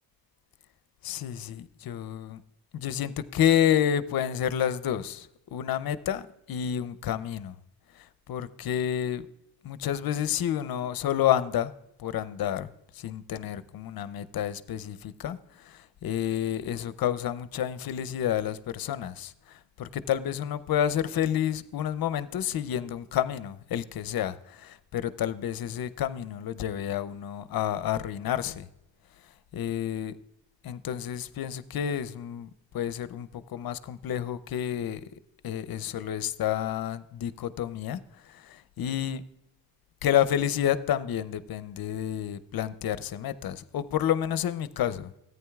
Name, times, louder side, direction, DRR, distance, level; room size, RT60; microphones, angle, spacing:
voice 1, 1.0-2.4 2.7-7.5 8.3-9.3 9.6-11.7 12.0-28.7 29.5-30.1 30.6-32.5 32.7-35.0 35.4-38.0 38.3-39.2 40.0-45.1, left 10 dB, 55° left, 0.6 m, -29 dB
14.0 x 9.3 x 2.3 m
cardioid pair, 80°, 44 cm